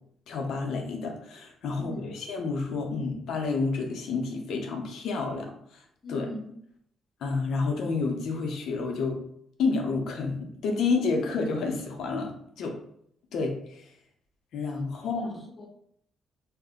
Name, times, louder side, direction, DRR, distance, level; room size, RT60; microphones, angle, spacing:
voice 1, 0.3-5.8 6.1-6.3 7.2-9.2 9.6-12.7 13.3-13.8 14.5-15.4, left 4 dB, 75° left, 2 dB, 0.6 m, -30 dB
voice 2, 1.7-2.1 6.0-6.5 15.0-15.7, left 1 dB, 30° left, 2 dB, 0.7 m, -41 dB
2.5 x 2.1 x 3.6 m, 0.69 s
cardioid pair, 90°, 0 cm